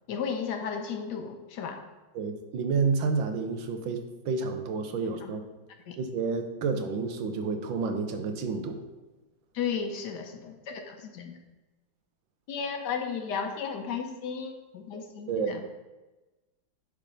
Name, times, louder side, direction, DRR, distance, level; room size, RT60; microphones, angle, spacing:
voice 1, 0.1-1.8 5.2-5.3 5.9-6.0 9.5-11.4 12.5-15.6, left 6 dB, 65° left, 5 dB, 1.3 m, -34 dB
voice 2, 2.1-5.4 6.0-8.8 14.9-15.0 15.3-15.6, right 4 dB, 85° right, 7 dB, 1.6 m, -30 dB
10.0 x 3.5 x 5.2 m, 1.1 s
omnidirectional pair, 2.1 m